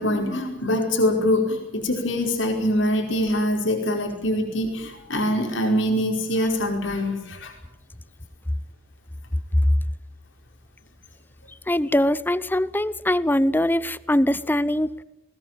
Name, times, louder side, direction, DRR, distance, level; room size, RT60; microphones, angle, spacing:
voice 1, 0.0-7.5, left 1 dB, 90° left, 2 dB, 5.1 m, -24 dB
voice 2, 11.7-14.9, left 1 dB, 10° left, 18 dB, 0.7 m, -22 dB
21.0 x 19.5 x 9.1 m, 0.91 s
head